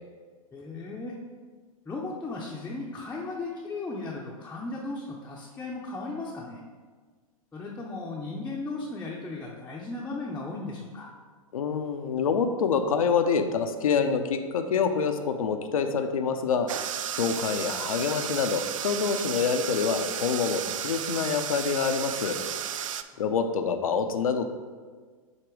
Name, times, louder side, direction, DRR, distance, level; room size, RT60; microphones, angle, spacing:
voice 1, 0.5-1.1 1.9-6.6 7.5-11.1, left 3 dB, 10° left, -3 dB, 0.6 m, -36 dB
voice 2, 11.5-16.7 17.1-22.4 23.2-24.5, left 6 dB, 70° left, 7 dB, 0.6 m, -26 dB
sound 1, 16.7-23.0, right 9 dB, 60° right, 0.4 m, -33 dB
7.9 x 3.0 x 4.7 m, 1.5 s
figure-of-eight pair, 100°, 19 cm